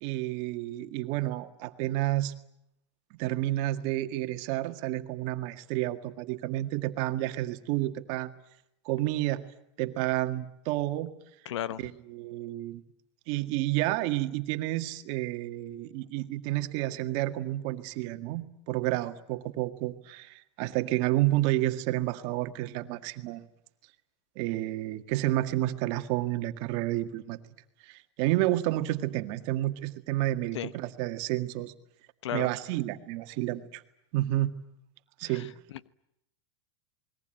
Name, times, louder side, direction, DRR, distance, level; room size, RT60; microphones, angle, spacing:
voice 1, 0.0-2.3 3.1-8.3 8.9-9.4 9.8-11.1 11.8-12.8 13.3-23.5 24.4-27.4 27.8-31.7 32.3-33.8 34.1-34.5 35.2-35.5, right 16 dB, 50° right, 8 dB, 1.9 m, -30 dB
voice 2, 11.4-11.9 30.5-30.7 32.2-32.5 35.2-35.5, left 11 dB, 85° left, 17 dB, 1.0 m, -34 dB
28.5 x 21.0 x 9.1 m, 0.79 s
supercardioid pair, 140°, 15 cm